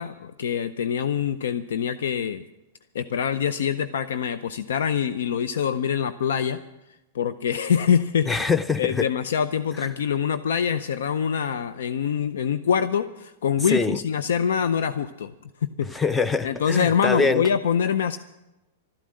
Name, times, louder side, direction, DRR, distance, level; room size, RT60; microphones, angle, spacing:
voice 1, 0.0-2.4 2.9-6.6 7.1-8.3 8.8-15.3 15.6-15.9 16.4-18.2, left 7 dB, 80° left, 0.5 m, -24 dB
voice 2, 8.3-9.1 13.7-14.0 15.8-17.5, left 4 dB, 10° left, 0.5 m, -24 dB
13.0 x 11.5 x 7.6 m
hypercardioid pair, 145°, 0 cm